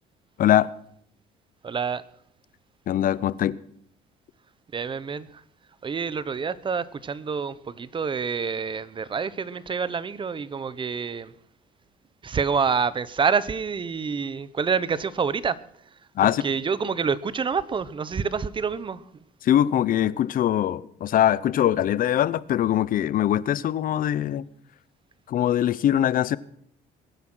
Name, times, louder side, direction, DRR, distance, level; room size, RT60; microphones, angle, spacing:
voice 1, 0.4-0.7 2.9-3.6 16.2-16.4 19.4-24.4 25.3-26.4, left 11 dB, 55° left, 0.8 m, -22 dB
voice 2, 1.6-2.0 4.7-5.3 5.8-11.3 12.2-15.6 16.2-19.0, right 5 dB, 30° right, 0.9 m, -27 dB
22.0 x 9.6 x 6.3 m
cardioid pair, 110°, 17 cm